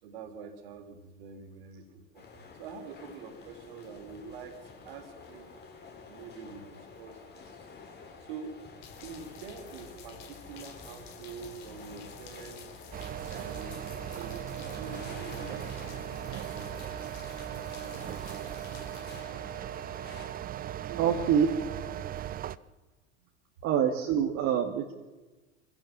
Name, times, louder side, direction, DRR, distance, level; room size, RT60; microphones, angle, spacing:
voice 1, 0.0-4.6 4.8-5.5 6.1-7.6 8.2-8.6 9.0-12.7 13.3-16.6 17.9-19.0 20.7-21.4, right 5 dB, 55° right, 8 dB, 3.7 m, -46 dB
sound 1, 2.1-20.3, left 4 dB, 30° left, 6.3 m, -50 dB
sound 2, 8.8-19.2, left 5 dB, 50° left, 5.2 m, -50 dB
sound 3, 12.9-22.6, right 11 dB, 25° right, 0.8 m, -38 dB
voice 2, 21.0-21.5 23.6-24.9, right 8 dB, 40° right, 3 dB, 2.3 m, -25 dB
27.0 x 16.5 x 7.4 m, 1.2 s
figure-of-eight pair, 75°, 34 cm